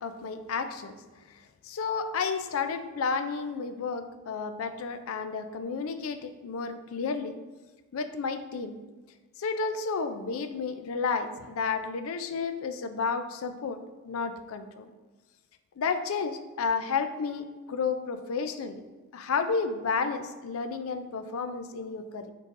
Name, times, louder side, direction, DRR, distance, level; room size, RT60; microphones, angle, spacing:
voice 1, 0.0-1.0 1.7-7.3 7.9-8.8 9.4-13.8 14.0-14.9 15.8-18.8 19.1-22.3, left 5 dB, 75° left, 9 dB, 0.4 m, -31 dB
6.7 x 3.1 x 2.5 m, 1.2 s
head